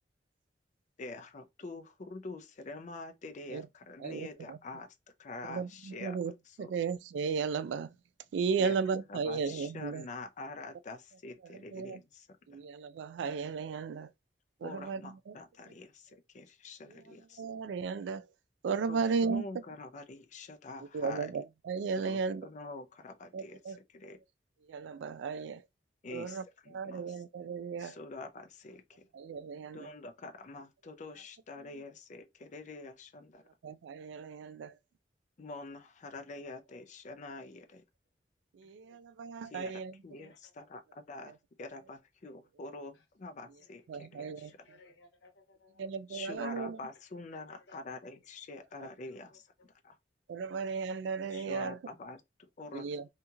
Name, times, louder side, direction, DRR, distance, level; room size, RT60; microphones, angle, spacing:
voice 1, 1.0-6.2 6.5-6.7 8.6-8.8 9.1-12.6 14.6-17.4 18.9-21.3 22.0-24.2 26.0-27.2 27.8-29.1 29.7-33.4 35.4-37.8 39.4-44.7 46.1-50.0 51.3-52.9, left 3 dB, 45° left, 0.5 m, -46 dB
voice 2, 4.0-4.6 5.5-6.3 6.6-7.9 8.3-10.1 11.7-12.0 12.5-14.1 14.6-15.4 17.1-18.2 18.6-19.4 20.9-22.5 23.3-23.8 24.7-25.6 26.1-26.4 26.7-28.0 29.1-29.9 33.6-34.7 38.5-39.9 43.9-44.5 45.8-46.8 50.3-51.8 52.7-53.0, right 5 dB, 90° right, 0.3 m, -35 dB
voice 3, 44.1-45.9 47.7-47.8 52.9-53.0, left 3 dB, 75° left, 0.9 m, -61 dB
2.8 x 2.7 x 2.3 m
head